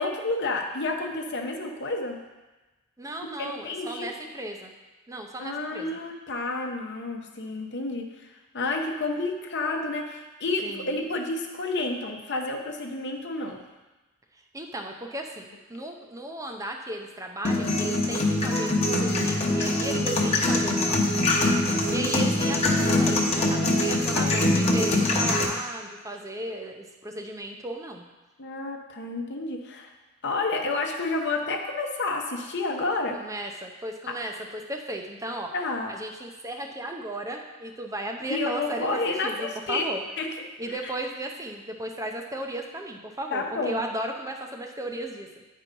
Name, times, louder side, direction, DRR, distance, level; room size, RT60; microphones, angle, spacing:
voice 1, 0.0-2.2 3.4-4.1 5.4-13.6 22.0-22.1 24.1-24.4 28.4-29.9 30.2-33.2 34.1-34.2 35.5-35.9 38.3-39.9 40.2-40.9 43.3-43.8, left 3 dB, 50° left, 3 dB, 0.9 m, -30 dB
voice 2, 3.0-4.7 5.1-6.0 10.6-11.0 14.5-21.1 21.9-28.0 33.1-35.5 35.9-40.0 40.6-45.4, right 1 dB, 15° right, 2 dB, 0.6 m, -35 dB
sound 1, 17.4-25.4, left 2 dB, 30° left, 1.0 m, -23 dB
9.4 x 4.6 x 5.3 m, 1.1 s
head